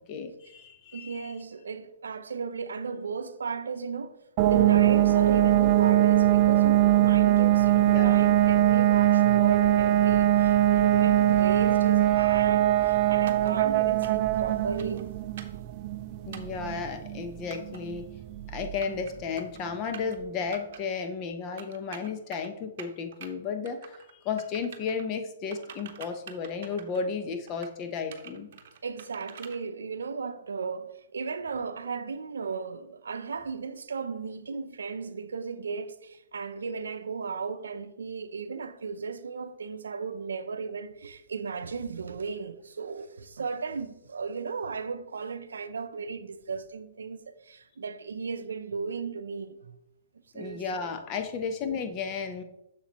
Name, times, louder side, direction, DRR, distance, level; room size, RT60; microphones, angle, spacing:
voice 1, 0.1-1.3 7.8-8.2 16.3-18.1 18.5-24.0 24.2-28.5 50.3-52.4, left 5 dB, 30° left, 0.9 m, -33 dB
voice 2, 0.9-4.2 4.5-15.1 28.8-49.7 50.3-50.6, right 5 dB, 90° right, 0.5 m, -35 dB
sound 1, 4.4-19.0, right 13 dB, 35° right, 0.4 m, -22 dB
sound 2, 13.3-13.5 14.0-14.3 14.8-15.0 15.4-15.6 16.3-16.6 17.5-17.8 18.6-19.1 19.4-19.6 19.9-20.2 20.5-20.8 21.6-22.5 22.8-23.3 23.6-24.1 24.4-25.0 25.5-27.1 27.5-27.7 28.1-29.6, right 8 dB, 55° right, 0.9 m, -46 dB
7.1 x 6.9 x 3.0 m
hypercardioid pair, 140°, 0 cm